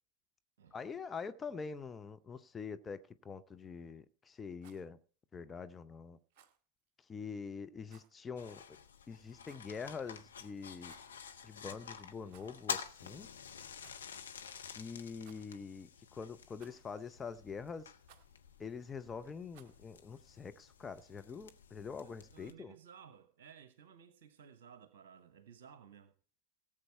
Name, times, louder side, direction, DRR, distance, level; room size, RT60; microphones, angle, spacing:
voice 1, 0.7-5.0 5.3-6.2 7.1-8.6 9.1-10.9 11.4-13.3 14.8-17.9 18.6-22.7, left 5 dB, 15° left, 0.6 m, -45 dB
Rattle, 4.5-4.9 6.3-6.6 7.9-8.1 9.4-9.8 10.7-11.2 12.2-12.7 12.9-13.0 13.8-14.0 15.2-15.7 16.6-17.0 18.0-18.3 19.5-19.8, right 9 dB, 40° right, 1.7 m, -64 dB
sound 1, 8.4-22.5, left 7 dB, 65° left, 1.1 m, -49 dB
voice 2, 22.0-26.1, right 7 dB, 60° right, 1.1 m, -57 dB
17.5 x 7.7 x 4.5 m
figure-of-eight pair, 90°, 0 cm